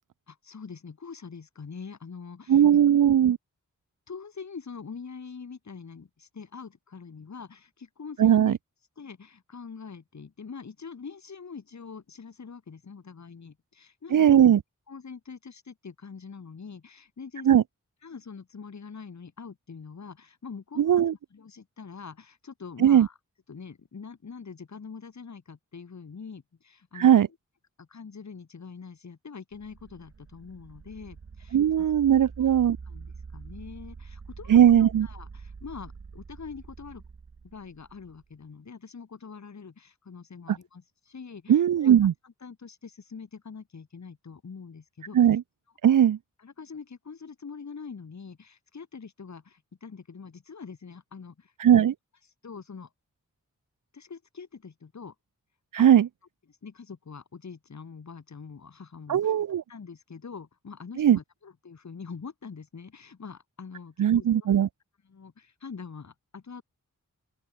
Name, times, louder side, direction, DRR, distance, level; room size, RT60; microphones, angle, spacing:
voice 1, 0.3-2.7 4.1-8.6 9.0-14.4 14.9-17.5 18.0-23.2 23.5-27.2 27.8-31.8 32.4-32.5 32.8-34.6 35.0-37.0 37.4-41.9 42.2-45.2 46.4-51.5 52.4-52.9 53.9-55.1 55.8-55.9 56.5-59.3 59.7-64.5 65.0-66.6, left 5 dB, 60° left, 1.5 m, -44 dB
voice 2, 2.5-3.4 8.2-8.6 14.1-14.6 17.4-17.6 20.8-21.1 22.8-23.1 26.9-27.3 31.5-32.8 34.5-35.1 40.5-40.6 41.5-42.1 45.1-45.4 45.8-46.2 51.6-51.9 55.7-56.1 59.1-59.6 61.0-61.2 64.0-64.7, right 9 dB, 75° right, 0.6 m, -19 dB
sound 1, 29.5-38.3, right 5 dB, 45° right, 1.1 m, -45 dB
open air
wide cardioid pair, 55°, 32 cm